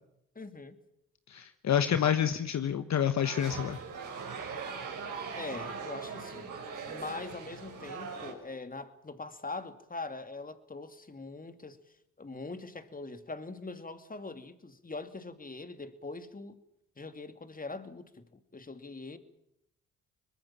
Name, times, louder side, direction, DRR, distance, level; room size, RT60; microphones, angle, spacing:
voice 1, 0.3-0.8 5.4-6.6 6.9-11.8 12.2-16.5 17.0-19.2, left 3 dB, 25° left, 2.7 m, -42 dB
voice 2, 1.3-3.8, left 9 dB, 60° left, 1.3 m, -28 dB
sound 1, 3.2-8.3, right 5 dB, 75° right, 5.8 m, -40 dB
23.5 x 21.0 x 7.5 m
supercardioid pair, 50°, 31 cm